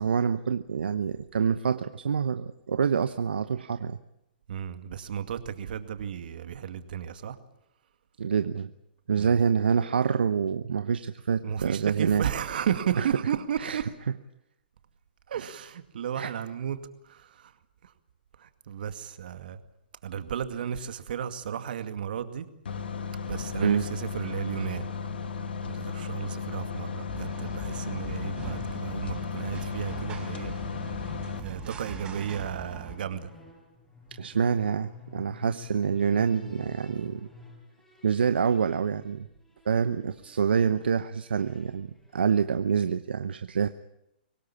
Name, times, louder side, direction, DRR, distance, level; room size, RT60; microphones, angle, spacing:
voice 1, 0.0-4.0 8.2-8.7 9.1-12.2 13.0-13.1 13.6-13.8 16.2-16.3 23.6-23.9 34.2-37.3 38.0-39.3 39.7-43.7, right 6 dB, 80° right, 11 dB, 1.0 m, -26 dB
voice 2, 4.5-7.4 9.2-9.4 11.4-13.9 15.3-16.8 17.0-17.5 17.8-17.9 18.4-19.6 20.0-22.5 23.3-24.9 25.6-30.5 31.4-33.3, right 8 dB, 65° right, 9 dB, 2.2 m, -33 dB
sound 1, 22.7-31.4, left 5 dB, 75° left, 2.1 m, -35 dB
sound 2, 23.9-43.0, left 3 dB, 10° left, 5.6 m, -52 dB
sound 3, 27.1-32.9, right 4 dB, 15° right, 4.9 m, -41 dB
24.0 x 18.5 x 8.6 m, 0.84 s
hypercardioid pair, 135°, 5 cm